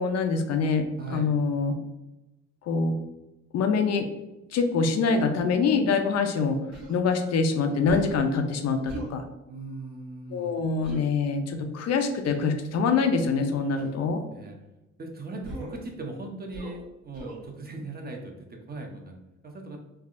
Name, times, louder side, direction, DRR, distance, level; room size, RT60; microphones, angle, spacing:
voice 1, 0.0-1.8 2.7-3.0 3.5-4.1 4.5-6.6 6.9-9.2 10.3-14.2, left 4 dB, 60° left, 6 dB, 0.4 m, -25 dB
voice 2, 1.0-1.3 9.5-10.6 14.3-14.6 15.0-19.8, right 2 dB, 30° right, 2 dB, 0.6 m, -39 dB
Human voice, 6.7-7.0 7.9-8.2 8.9-9.2 10.8-11.0 12.2-12.6 13.8-14.0 15.4-15.8 16.5-16.8 17.1-17.4, right 2 dB, 60° right, 1.2 m, -40 dB
3.3 x 2.3 x 2.4 m, 0.99 s
cardioid pair, 90°, 30 cm